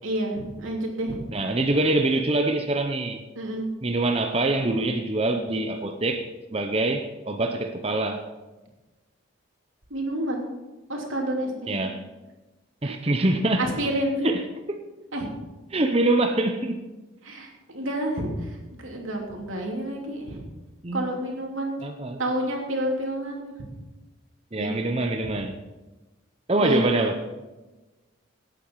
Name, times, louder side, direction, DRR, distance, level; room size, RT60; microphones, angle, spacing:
voice 1, 0.0-1.2 3.3-3.7 9.9-10.5 10.9-11.9 12.8-13.0 13.6-14.3 15.1-15.3 17.2-18.6 18.8-20.4 20.9-21.7 22.2-23.5 24.5-24.7 26.5-27.1, right 1 dB, 85° right, 0 dB, 3.2 m, -29 dB
voice 2, 1.3-3.2 3.8-6.3 6.5-8.2 11.7-12.0 12.8-13.7 14.2-14.8 15.7-16.8 20.8-21.0 21.8-22.2 24.5-25.6 26.5-27.2, right 2 dB, 30° right, 5 dB, 0.7 m, -24 dB
18.0 x 8.9 x 4.8 m, 1.1 s
head